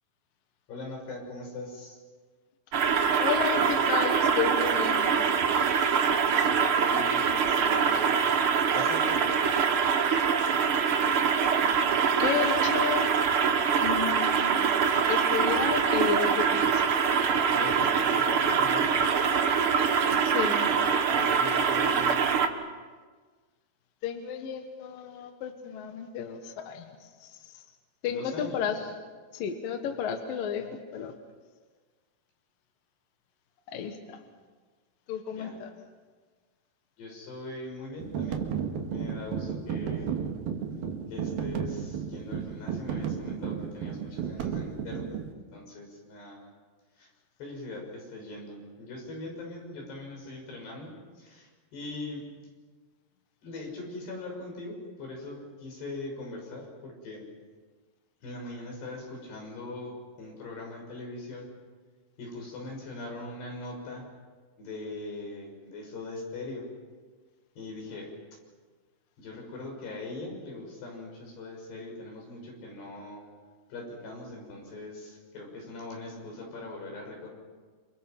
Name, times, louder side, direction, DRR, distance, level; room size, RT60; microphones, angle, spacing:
voice 1, 0.7-2.0 6.2-8.4 8.7-9.2 17.5-19.1 21.1-22.3 28.1-28.9 34.0-34.2 35.4-35.6 37.0-38.4 38.9-40.1 41.1-46.4 47.0-47.1 47.4-52.3 53.4-57.3 58.2-61.5 62.2-64.1 64.6-66.7 67.6-68.1 69.2-73.2 73.7-77.3, left 2 dB, 85° left, 1 dB, 8.2 m, -41 dB
sound 1, 2.7-22.5, right 6 dB, 85° right, 1.2 m, -24 dB
voice 2, 3.2-5.3 12.2-13.1 13.8-14.6 15.1-16.8 20.2-20.7 24.0-26.9 27.2-27.3 28.0-28.8 29.3-30.7 30.9-31.1 33.7-34.2 35.1-35.7, left 8 dB, 65° left, 5 dB, 2.9 m, -32 dB
sound 2, 38.0-45.3, right 7 dB, 70° right, 3.5 m, -33 dB
28.5 x 28.5 x 6.0 m, 1.4 s
omnidirectional pair, 4.6 m